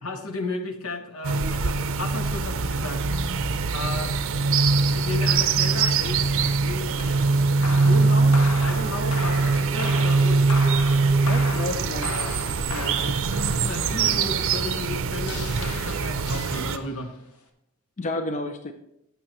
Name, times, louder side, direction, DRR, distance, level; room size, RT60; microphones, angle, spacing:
voice 1, 0.0-3.0 3.7-4.4 4.9-6.3 6.6-10.7 13.6-17.1, left 2 dB, 70° left, 6 dB, 1.1 m, -34 dB
sound 1, 1.2-16.8, right 4 dB, 60° right, 0.6 m, -22 dB
sound 2, 7.0-17.1, left 3 dB, 90° left, 1.2 m, -37 dB
sound 3, 7.7-14.2, right 2 dB, 10° right, 1.0 m, -42 dB
voice 2, 11.3-13.3 18.0-18.7, left 2 dB, 35° left, 7 dB, 0.5 m, -32 dB
15.5 x 6.7 x 3.0 m, 0.81 s
head